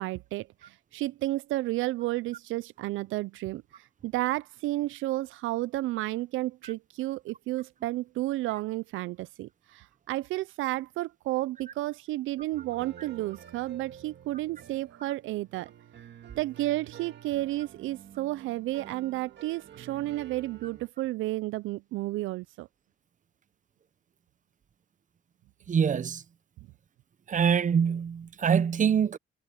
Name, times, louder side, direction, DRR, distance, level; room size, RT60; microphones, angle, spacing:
voice 1, 0.0-15.7 16.3-22.7, right 17 dB, 85° right, 0.4 m, -32 dB
sound 1, 12.5-20.9, right 9 dB, 60° right, 2.0 m, -49 dB
voice 2, 25.7-26.2 27.3-29.2, right 7 dB, 40° right, 0.8 m, -24 dB
cardioid pair, 90°, 20 cm